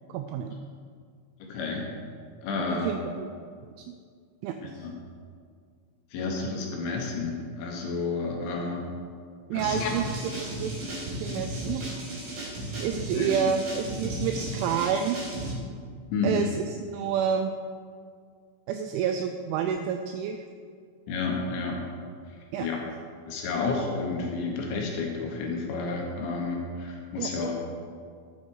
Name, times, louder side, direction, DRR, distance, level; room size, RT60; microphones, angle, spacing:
voice 1, 0.1-0.6 2.7-3.3 4.4-4.6 9.5-10.8 11.2-11.8 12.8-15.3 16.2-17.5 18.7-20.4 22.5-22.7 27.2-27.3, right 7 dB, 85° right, 6 dB, 2.7 m, -29 dB
voice 2, 1.4-1.9 2.4-2.9 4.6-5.0 6.1-8.9 9.5-9.9 10.2-10.4 10.8-10.9 13.1-13.3 16.1-16.4 21.1-21.8 22.3-22.8 23.3-27.6, left 4 dB, 70° left, 0 dB, 3.2 m, -31 dB
sound 1, 9.6-15.5, right 1 dB, 45° right, 4.1 m, -35 dB
12.5 x 8.2 x 4.8 m, 2.1 s
omnidirectional pair, 6.0 m